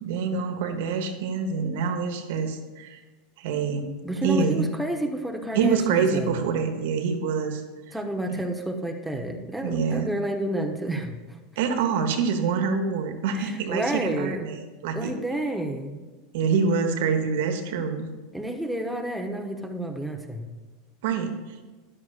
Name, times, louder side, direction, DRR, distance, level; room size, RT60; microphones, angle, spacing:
voice 1, 0.0-3.0 3.4-3.9 4.2-4.7 5.5-7.6 9.6-10.1 11.6-15.1 16.3-18.1 21.0-21.3, right 5 dB, 60° right, 5 dB, 1.2 m, -26 dB
voice 2, 4.0-6.5 7.9-11.4 13.3-14.4 14.9-16.0 18.3-20.5, right 1 dB, 5° right, 2 dB, 1.0 m, -30 dB
13.5 x 11.0 x 2.5 m, 1.3 s
figure-of-eight pair, 85°, 0 cm